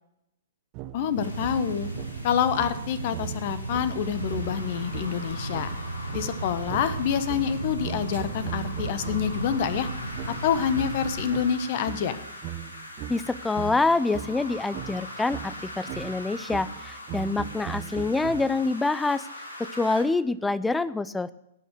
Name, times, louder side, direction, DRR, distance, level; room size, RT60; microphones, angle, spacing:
sound 1, 0.7-9.5 10.2-18.8, right 13 dB, 35° right, 0.8 m, -40 dB
voice 1, 0.9-1.9 2.2-5.7 6.1-9.9 10.4-12.2, left 8 dB, 45° left, 13 dB, 1.1 m, -27 dB
sound 2, 1.1-11.4, right 2 dB, 70° right, 1.8 m, -35 dB
sound 3, 1.2-20.0, left 1 dB, 75° left, 3.1 m, -42 dB
voice 2, 13.1-19.3 19.6-21.3, left 3 dB, 5° left, 18 dB, 0.5 m, -26 dB
18.0 x 6.3 x 6.5 m, 0.83 s
figure-of-eight pair, 115°, 0 cm